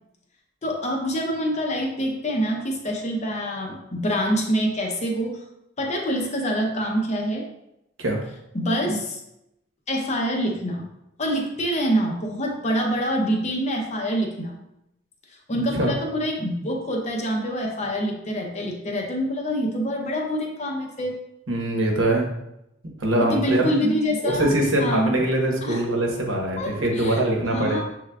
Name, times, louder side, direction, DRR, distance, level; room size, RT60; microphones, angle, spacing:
voice 1, 0.6-5.4 5.8-7.5 8.5-9.2 9.9-10.9 11.2-14.6 15.5-21.2 23.2-24.5 24.8-25.1 25.6-25.8 26.6-27.2 27.5-27.8, equal, 35° left, 1 dB, 0.6 m, -25 dB
voice 2, 21.5-22.3 23.0-23.7 24.2-27.8, right 1 dB, 65° right, 0 dB, 1.0 m, -23 dB
6.7 x 3.4 x 2.3 m, 0.86 s
head